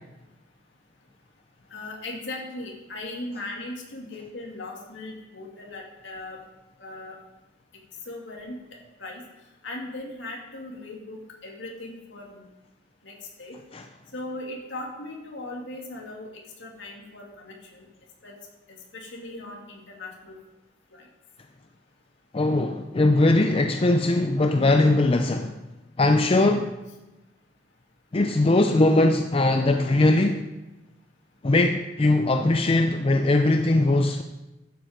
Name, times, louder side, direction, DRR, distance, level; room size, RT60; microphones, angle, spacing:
voice 1, 1.7-6.4 6.8-7.1 8.1-8.5 9.0-9.2 9.6-12.4 13.0-13.5 14.1-16.3 16.6-17.9 18.2-18.3 18.9-20.4 20.9-21.0, left 2 dB, 60° left, -1 dB, 2.5 m, -38 dB
voice 2, 22.3-25.6 26.0-26.7 28.1-30.5 31.4-34.2, left 2 dB, 30° left, 5 dB, 0.5 m, -20 dB
12.0 x 7.8 x 5.1 m, 1.0 s
head